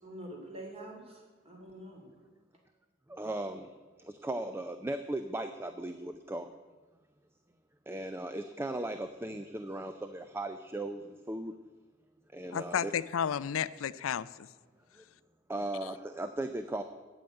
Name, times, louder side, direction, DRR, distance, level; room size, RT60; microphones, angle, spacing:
voice 1, 0.0-2.1, right 1 dB, 30° right, 0 dB, 2.7 m, -46 dB
voice 2, 3.1-6.5 7.9-11.5 12.3-12.9 15.5-16.8, right 1 dB, 10° right, 8 dB, 0.4 m, -37 dB
voice 3, 12.5-14.5 15.8-15.9, left 8 dB, 85° left, 17 dB, 0.4 m, -32 dB
8.9 x 7.8 x 8.9 m, 1.3 s
head